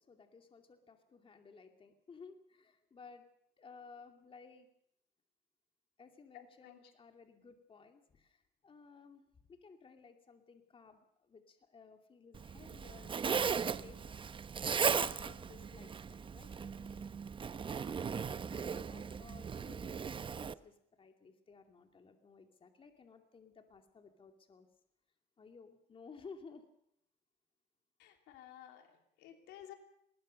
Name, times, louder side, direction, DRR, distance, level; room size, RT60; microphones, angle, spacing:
voice 1, 0.0-3.3 3.6-4.7 6.0-14.2 15.1-17.1 17.8-24.7 25.4-26.7, left 5 dB, 30° left, 5 dB, 2.7 m, -57 dB
voice 2, 6.3-6.8 28.0-29.7, left 11 dB, 90° left, 5 dB, 3.0 m, -54 dB
Zipper (clothing), 12.3-20.5, right 6 dB, 30° right, 0.8 m, -37 dB
20.0 x 20.0 x 6.6 m, 0.74 s
cardioid pair, 110°, 17 cm